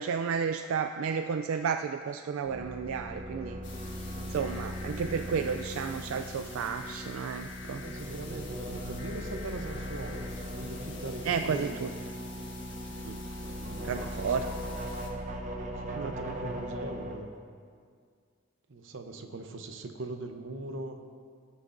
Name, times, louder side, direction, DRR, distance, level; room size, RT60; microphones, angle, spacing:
voice 1, 0.0-3.6 4.3-7.8 11.2-11.9 13.0-13.2 13.8-14.5 15.9-16.1, right 6 dB, 85° right, 8 dB, 0.3 m, -32 dB
sound 1, 2.4-17.2, equal, 35° right, 0.9 m, -39 dB
sound 2, 3.6-15.1, left 3 dB, 60° left, 1.3 m, -48 dB
voice 2, 7.8-10.3 10.6-11.9 13.4-14.0 14.2-14.5 15.8-17.3 18.7-21.0, right 2 dB, 65° right, 6 dB, 0.8 m, -41 dB
17.0 x 8.2 x 2.6 m, 2.1 s
head